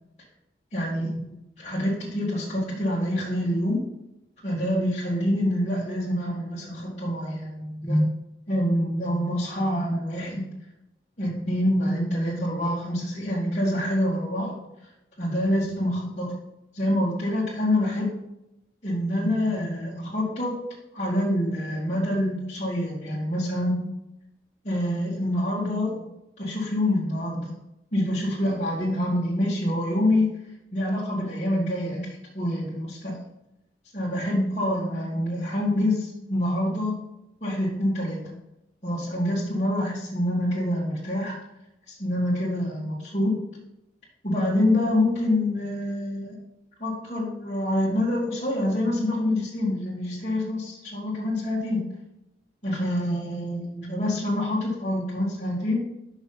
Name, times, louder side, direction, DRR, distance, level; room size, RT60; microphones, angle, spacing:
voice 1, 0.7-3.9 4.4-8.1 8.5-10.6 11.2-14.6 15.2-16.4 16.7-18.2 18.8-20.6 20.9-23.9 24.6-26.0 26.4-27.6 27.9-30.3 30.7-33.2 33.9-37.0 37.4-38.4 38.8-41.4 41.9-43.4 44.2-46.4 46.8-52.0 52.6-55.8, left 1 dB, 40° left, -8 dB, 1.8 m, -26 dB
6.0 x 5.7 x 5.5 m, 0.88 s
head